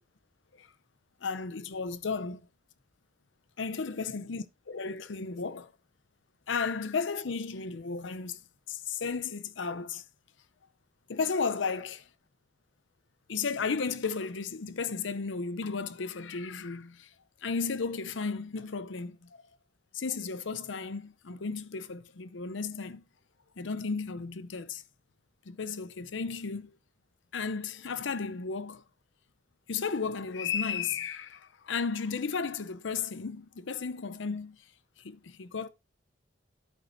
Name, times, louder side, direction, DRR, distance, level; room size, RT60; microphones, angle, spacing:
voice 1, 1.2-2.5 3.6-5.7 6.5-8.4 8.7-10.0 11.1-12.1 13.3-17.1 17.4-19.3 19.9-23.0 23.6-24.8 25.5-26.8 27.3-28.8 29.7-34.6 35.0-35.7, left 5 dB, 90° left, 0.7 m, -34 dB
10.0 x 8.4 x 2.7 m
head